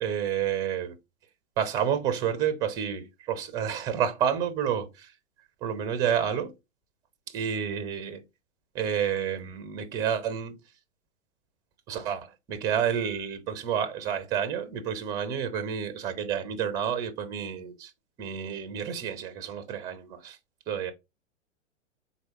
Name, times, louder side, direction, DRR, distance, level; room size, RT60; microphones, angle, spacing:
voice 1, 0.0-0.9 1.6-5.1 5.6-6.5 7.3-8.2 8.7-10.6 11.9-17.9 18.2-20.4 20.7-20.9, right 8 dB, 10° right, 0.4 m, -29 dB
4.6 x 3.9 x 2.9 m
figure-of-eight pair, 110°, 37 cm